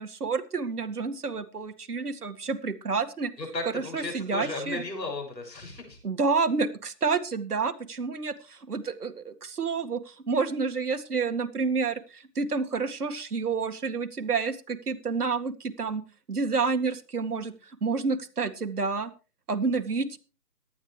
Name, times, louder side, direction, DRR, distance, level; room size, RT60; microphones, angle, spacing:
voice 1, 0.0-3.3 3.7-4.8 6.0-16.0 16.3-19.1 19.5-20.2, right 4 dB, 65° right, 8 dB, 2.1 m, -29 dB
voice 2, 3.4-6.0, left 2 dB, 80° left, 2 dB, 6.8 m, -35 dB
18.0 x 12.0 x 3.3 m, 0.35 s
hypercardioid pair, 180°, 50 cm